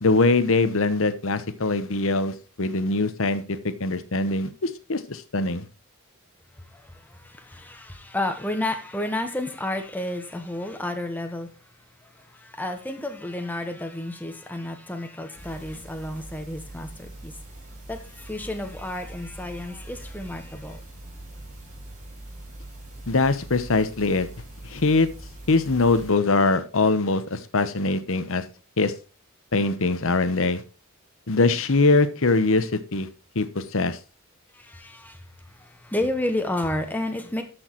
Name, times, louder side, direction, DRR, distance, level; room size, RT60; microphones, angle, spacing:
voice 1, 0.0-5.6 23.1-24.3 24.6-25.1 25.5-28.4 28.8-28.9 29.5-30.6 31.3-33.1 33.3-34.0, left 3 dB, 65° left, 1.0 m, -22 dB
voice 2, 6.5-11.7 12.0-17.3 17.9-20.8 34.5-37.4, left 1 dB, 10° left, 1.2 m, -31 dB
sound 1, 15.4-26.1, right 1 dB, 35° right, 4.5 m, -42 dB
13.5 x 6.3 x 3.1 m
head